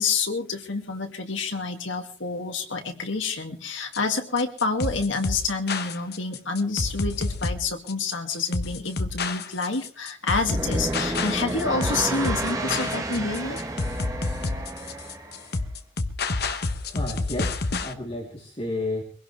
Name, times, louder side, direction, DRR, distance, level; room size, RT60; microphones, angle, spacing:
voice 1, 0.0-13.6, left 4 dB, 80° left, 5 dB, 2.3 m, -28 dB
sound 1, 3.9-17.9, left 3 dB, 55° left, 1.1 m, -29 dB
sound 2, 10.4-15.5, right 1 dB, 15° right, 1.8 m, -30 dB
voice 2, 16.9-19.0, left 2 dB, 30° left, -1 dB, 3.4 m, -31 dB
23.0 x 17.0 x 3.4 m, 0.43 s
head